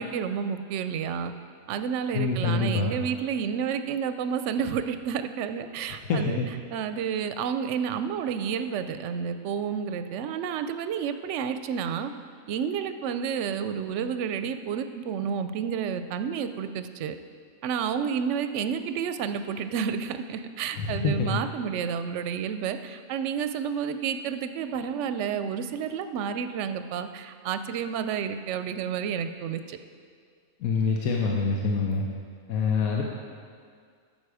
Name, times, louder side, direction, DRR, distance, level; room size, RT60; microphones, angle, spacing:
voice 1, 0.0-1.3 1.7-6.4 6.7-12.1 12.5-17.2 17.6-29.8, right 7 dB, 65° right, 9 dB, 0.8 m, -30 dB
voice 2, 2.1-2.9 5.9-6.5 20.7-21.4 30.6-32.0 32.5-33.0, left 4 dB, 85° left, -1 dB, 1.3 m, -26 dB
12.0 x 7.8 x 4.8 m, 2.1 s
omnidirectional pair, 1.4 m